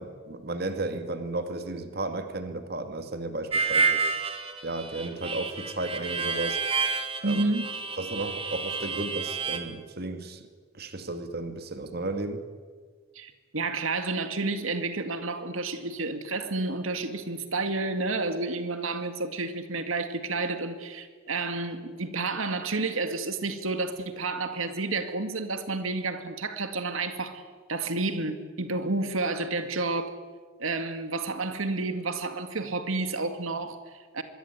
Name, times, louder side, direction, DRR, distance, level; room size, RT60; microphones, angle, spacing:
voice 1, 0.0-4.0 4.6-6.6 7.2-7.5 8.0-10.4 10.8-12.4, right 2 dB, 50° right, 7 dB, 2.2 m, -34 dB
Harmonica, 3.5-9.6, right 5 dB, 30° right, 2.6 m, -29 dB
voice 2, 7.2-7.7 13.1-27.4 27.7-30.1 30.6-34.2, right 3 dB, 85° right, 8 dB, 2.2 m, -30 dB
25.0 x 23.0 x 9.6 m, 1.5 s
head